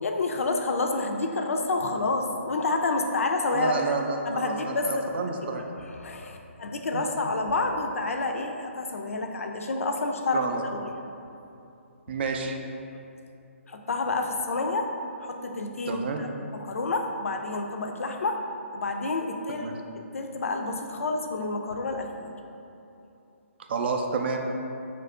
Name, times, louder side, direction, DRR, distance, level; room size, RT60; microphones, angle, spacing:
voice 1, 0.0-3.8 4.3-5.5 5.9-10.5 10.7-10.9 13.7-14.9 15.2-18.4 18.7-19.7 20.1-22.3, left 3 dB, 80° left, 4 dB, 0.3 m, -29 dB
voice 2, 3.5-5.7 6.9-7.0 10.3-10.6 12.1-12.6 15.9-16.2 19.6-19.7 23.7-24.4, right 4 dB, 50° right, 3 dB, 0.3 m, -29 dB
2.8 x 2.5 x 3.4 m, 2.7 s
hypercardioid pair, 150°, 7 cm